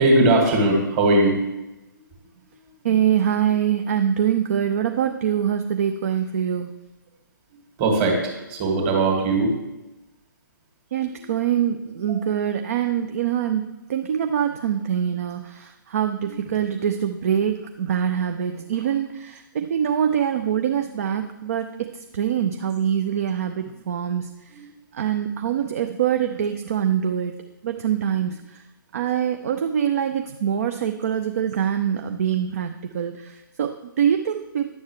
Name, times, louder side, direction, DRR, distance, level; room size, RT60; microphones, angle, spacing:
voice 1, 0.0-1.4 7.8-9.5 9.8-9.9 12.1-12.2 16.3-16.4 24.5-24.7, right 2 dB, 25° right, 1 dB, 2.0 m, -20 dB
voice 2, 2.8-6.7 10.9-13.6 13.9-21.7 22.1-24.3 24.9-27.3 27.6-28.6 28.9-34.7, right 9 dB, 45° right, 7 dB, 0.5 m, -24 dB
10.5 x 7.2 x 3.2 m, 1.0 s
figure-of-eight pair, 125°, 11 cm